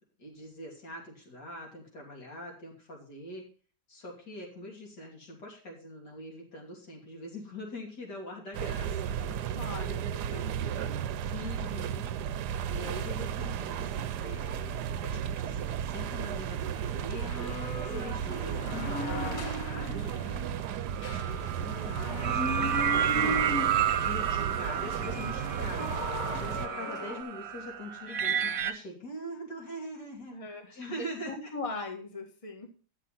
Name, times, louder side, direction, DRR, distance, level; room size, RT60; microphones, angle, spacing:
voice 1, 0.2-3.4 3.9-9.6 10.3-11.0 11.3-12.1 12.7-17.3 17.8-20.2 21.0-23.7 24.0-25.8 26.3-30.3 30.7-31.5, left 1 dB, 80° left, -1 dB, 3.7 m, -43 dB
sound 1, 8.5-26.7, right 9 dB, 75° right, 1.2 m, -34 dB
voice 2, 9.5-10.5 30.3-30.7 31.3-32.7, left 3 dB, 20° left, 3 dB, 1.7 m, -39 dB
sound 2, 16.4-27.2, left 2 dB, 55° left, 1.7 m, -38 dB
sound 3, 20.9-28.7, right 9 dB, 60° right, 1.2 m, -31 dB
11.0 x 6.7 x 5.8 m, 0.40 s
omnidirectional pair, 1.8 m